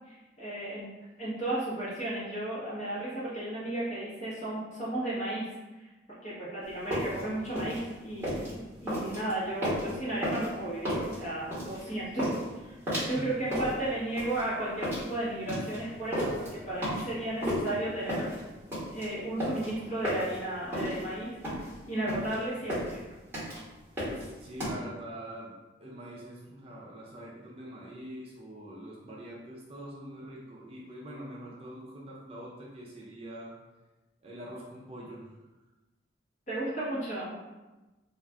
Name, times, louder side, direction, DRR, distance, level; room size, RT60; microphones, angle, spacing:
voice 1, 0.1-0.9 1.2-5.9 6.2-12.7 13.1-18.3 18.9-21.6 21.9-23.0 36.5-37.3, right 1 dB, 40° left, -9 dB, 1.1 m, -34 dB
sound 1, 6.7-24.7, equal, 10° right, 1.1 m, -34 dB
voice 2, 24.0-33.5 34.2-35.3, right 1 dB, 30° right, -5 dB, 0.5 m, -44 dB
2.4 x 2.4 x 3.3 m, 1.1 s
head